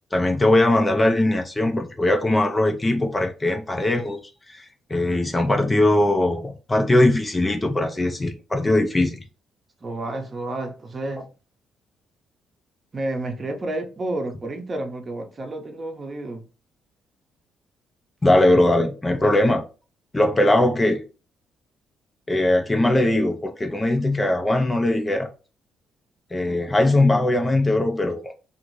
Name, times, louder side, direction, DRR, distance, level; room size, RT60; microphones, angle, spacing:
voice 1, 0.1-4.2 4.5-9.2 18.2-19.7 20.1-21.0 22.3-25.3 26.3-28.2, left 1 dB, 20° left, 0.4 m, -20 dB
voice 2, 9.8-11.3 12.9-16.5, right 2 dB, 35° right, 0.7 m, -30 dB
2.5 x 2.5 x 3.0 m
cardioid pair, 90°, 0 cm